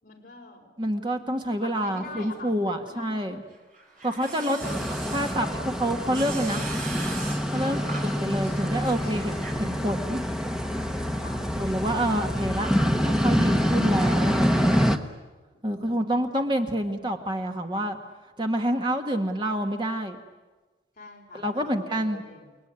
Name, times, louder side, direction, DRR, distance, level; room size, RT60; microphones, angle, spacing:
voice 1, 0.0-0.7 1.6-2.5 2.8-3.1 4.1-5.9 11.2-11.4 21.0-22.6, left 2 dB, 45° left, -1 dB, 4.6 m, -45 dB
voice 2, 0.8-3.4 4.0-4.6 4.9-6.6 7.5-10.2 11.4-12.7 13.0-14.8 15.6-18.0 18.4-20.2 21.3-22.2, equal, 25° right, 4 dB, 1.7 m, -28 dB
sound 1, 3.6-9.5, right 3 dB, 45° right, 5.4 m, -40 dB
sound 2, 4.6-15.0, equal, 5° right, 1.2 m, -26 dB
30.0 x 20.0 x 9.7 m, 1.2 s
head